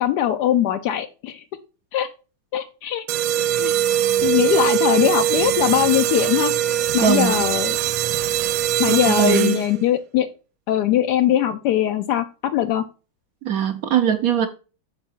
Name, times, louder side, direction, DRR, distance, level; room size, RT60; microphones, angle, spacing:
voice 1, 0.0-1.4 1.9-2.1 2.5-3.0 3.6-3.7 4.2-6.5 6.9-7.8 8.8-10.3 10.7-12.8, left 11 dB, 80° left, 0.9 m, -21 dB
sound 1, 3.1-9.9, right 11 dB, 85° right, 1.4 m, -22 dB
voice 2, 7.0-7.3 8.9-9.6 13.4-14.5, right 8 dB, 70° right, 0.8 m, -20 dB
7.6 x 4.5 x 4.2 m
omnidirectional pair, 2.3 m